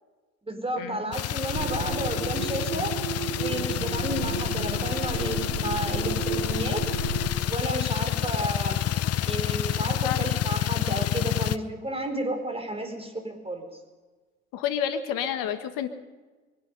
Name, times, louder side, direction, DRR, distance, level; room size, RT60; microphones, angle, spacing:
voice 1, 0.5-2.9 3.3-6.9 7.4-8.8 9.2-13.7, right 1 dB, 15° right, 3 dB, 4.8 m, -32 dB
sound 1, 1.1-11.6, left 12 dB, 45° left, 0.7 m, -28 dB
sound 2, 1.5-7.3, right 6 dB, 85° right, 1.3 m, -33 dB
voice 2, 14.5-15.9, left 9 dB, 65° left, 9 dB, 1.7 m, -29 dB
23.5 x 10.5 x 5.5 m, 1.3 s
hypercardioid pair, 60°, 35 cm